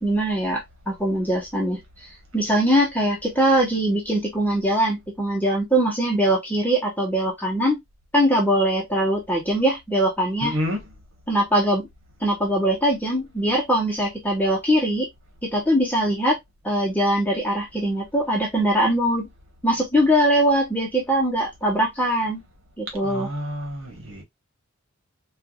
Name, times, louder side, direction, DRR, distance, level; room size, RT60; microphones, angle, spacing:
voice 1, 0.0-7.8 8.1-10.6 11.3-11.9 12.2-15.1 15.4-16.4 16.6-19.3 19.6-22.4 22.8-23.3, right 1 dB, 10° left, 0.9 m, -22 dB
voice 2, 10.4-10.8 23.0-24.2, equal, 70° right, 1.3 m, -29 dB
4.5 x 2.4 x 2.3 m
head